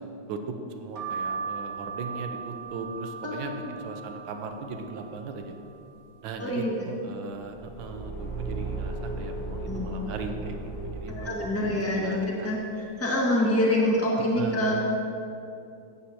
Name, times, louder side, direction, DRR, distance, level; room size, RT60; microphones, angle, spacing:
voice 1, 0.8-5.5 6.2-12.5 14.4-14.7, right 4 dB, 80° right, 5 dB, 1.5 m, -38 dB
sound 1, 1.0-6.6 7.1-7.9 8.3-8.4 8.5-9.7 10.1-10.5 11.3-11.6 12.4-12.6 12.9-13.1, right 5 dB, 60° right, 1.9 m, -39 dB
voice 2, 3.2-3.7 6.4-6.7 9.6-10.1 11.1-14.7, left 1 dB, 10° left, -4 dB, 1.4 m, -26 dB
Car / Engine, 7.4-11.9, right 2 dB, 85° left, 3.5 m, -35 dB
16.0 x 8.1 x 2.9 m, 2.7 s
omnidirectional pair, 2.1 m